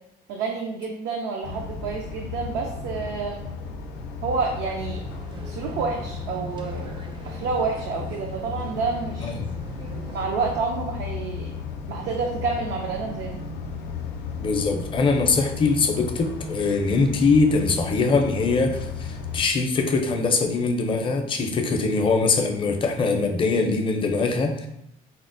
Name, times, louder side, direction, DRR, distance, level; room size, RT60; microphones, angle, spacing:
voice 1, 0.3-3.4 4.2-5.0 5.5-6.9 7.2-9.3 10.1-11.5 11.9-13.4, right 4 dB, 85° right, 0 dB, 0.5 m, -29 dB
sound 1, 1.4-19.4, left 5 dB, 90° left, 0.4 m, -35 dB
sound 2, 4.4-10.3, right 3 dB, 30° right, 0.4 m, -41 dB
voice 2, 9.2-9.5 14.4-24.7, left 4 dB, 30° left, 4 dB, 0.5 m, -22 dB
4.0 x 2.0 x 2.5 m, 0.79 s
cardioid pair, 110°, 17 cm